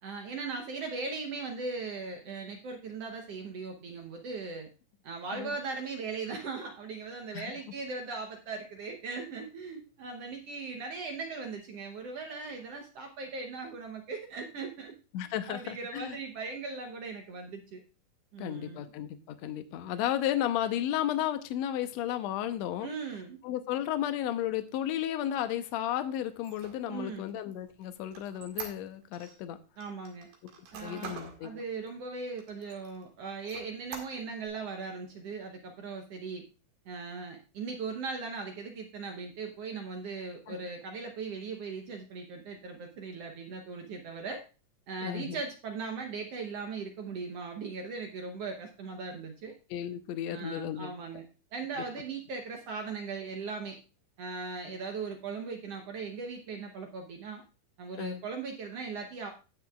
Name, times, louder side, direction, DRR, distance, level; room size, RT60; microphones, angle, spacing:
voice 1, 0.0-4.7 5.0-14.9 15.5-17.8 18.3-18.8 22.8-23.4 26.9-27.3 29.8-30.3 30.7-36.4 36.8-44.4 44.9-49.5 50.3-51.2 51.5-53.8 54.2-57.4 57.8-59.3, right 4 dB, 65° right, 3 dB, 1.6 m, -39 dB
voice 2, 15.1-16.2 18.4-22.9 23.4-29.6 30.7-31.5 40.5-40.6 45.0-45.4 49.7-50.9 58.0-58.2, left 11 dB, 75° left, 9 dB, 1.7 m, -33 dB
Squeak, 26.3-29.4 29.8-31.4 31.9-32.0 32.4-33.0 33.4-34.5, right 7 dB, 85° right, 3.5 m, -45 dB
17.5 x 6.3 x 2.3 m, 0.33 s
omnidirectional pair, 3.9 m